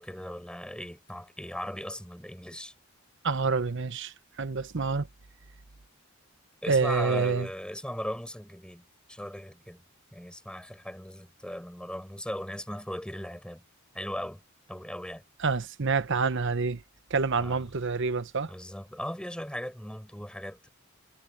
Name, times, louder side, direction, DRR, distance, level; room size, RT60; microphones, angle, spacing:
voice 1, 0.0-2.7 6.6-9.8 10.1-13.6 13.9-14.4 14.7-15.2 17.4-17.6 18.5-20.7, equal, 5° left, 7.4 m, -38 dB
voice 2, 3.2-5.1 6.7-7.5 15.4-16.8 17.1-18.5, right 4 dB, 65° right, 0.9 m, -27 dB
head